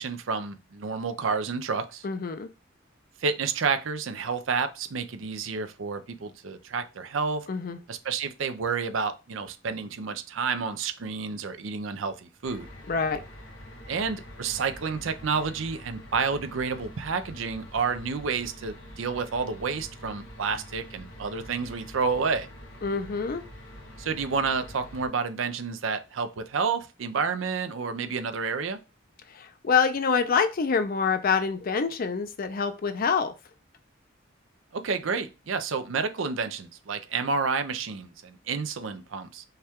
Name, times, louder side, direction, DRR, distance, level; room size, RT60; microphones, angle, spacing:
voice 1, 0.0-2.1 3.2-7.5 7.9-12.7 13.9-22.5 24.0-28.8 34.7-39.4, right 5 dB, 75° right, 0.5 m, -30 dB
voice 2, 2.0-2.5 7.5-7.8 12.9-13.2 22.8-23.4 29.3-33.3, left 5 dB, 45° left, 0.5 m, -26 dB
sound 1, 12.4-25.1, equal, 80° left, 1.4 m, -45 dB
5.5 x 2.3 x 3.5 m
head